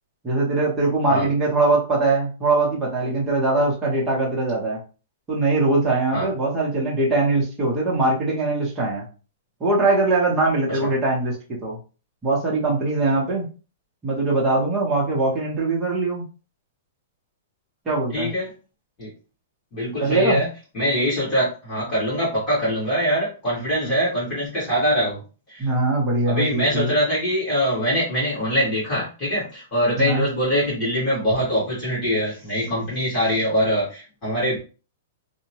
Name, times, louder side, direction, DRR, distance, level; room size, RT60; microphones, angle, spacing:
voice 1, 0.2-4.8 5.3-9.1 9.6-11.4 11.6-11.8 12.2-13.5 14.0-16.2 17.9-18.3 20.0-20.4 23.8-23.9 25.6-26.9 30.0-30.2, right 2 dB, 10° right, -4 dB, 0.7 m, -21 dB
voice 2, 18.1-18.5 19.0-19.1 19.7-20.5 20.7-25.2 25.5-25.7 26.3-34.6, equal, 20° left, -9 dB, 1.5 m, -23 dB
2.8 x 2.1 x 2.8 m, 0.35 s
hypercardioid pair, 175°, 0 cm